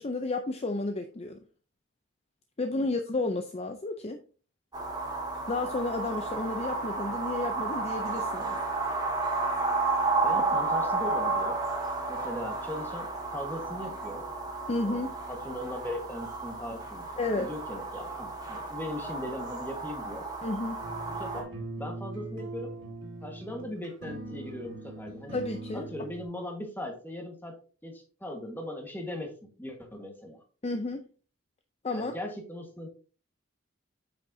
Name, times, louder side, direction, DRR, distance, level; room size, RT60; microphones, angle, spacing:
voice 1, 0.0-1.4 2.6-4.2 5.5-8.6 10.3-10.4 14.7-15.1 17.2-17.5 20.4-20.9 25.3-25.9 30.6-31.0 31.8-32.1, left 2 dB, 30° left, 6 dB, 0.5 m, -32 dB
sound 1, 4.7-21.4, right 3 dB, 20° right, 1.8 m, -32 dB
voice 2, 10.2-11.6 12.1-14.2 14.8-20.3 21.1-21.5 21.8-22.7 23.2-25.4 25.7-27.6 27.8-30.4 31.9-32.9, left 1 dB, 10° left, 3 dB, 1.5 m, -39 dB
sound 2, 20.8-26.2, right 2 dB, 65° right, 2.2 m, -41 dB
8.8 x 6.3 x 2.7 m, 0.37 s
head